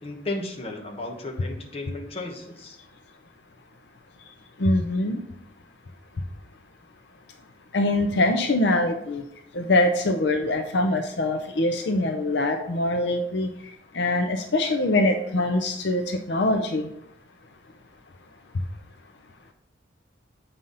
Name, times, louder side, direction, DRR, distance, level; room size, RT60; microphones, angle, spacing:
voice 1, 0.0-2.8, left 2 dB, 30° left, 2 dB, 1.1 m, -34 dB
voice 2, 4.6-5.2 7.7-9.2 9.5-13.5 13.9-16.9, left 2 dB, 65° left, 6 dB, 0.6 m, -23 dB
7.9 x 5.6 x 3.9 m, 0.76 s
head